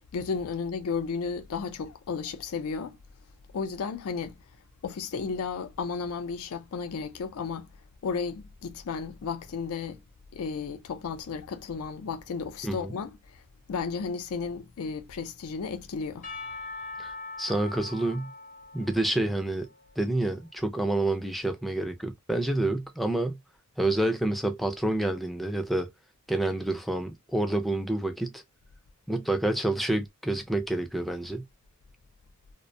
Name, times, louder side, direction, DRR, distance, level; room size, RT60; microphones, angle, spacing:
voice 1, 0.0-3.0 3.5-4.4 4.8-7.7 8.0-10.0 10.3-13.4 13.7-16.3, left 5 dB, 80° left, 0.4 m, -33 dB
Percussion / Church bell, 16.2-20.6, left 3 dB, 35° left, 0.7 m, -42 dB
voice 2, 17.4-18.3 18.7-19.7 20.0-23.4 23.8-25.9 26.3-28.4 29.1-31.4, right 1 dB, ahead, 0.3 m, -28 dB
2.5 x 2.1 x 2.5 m
head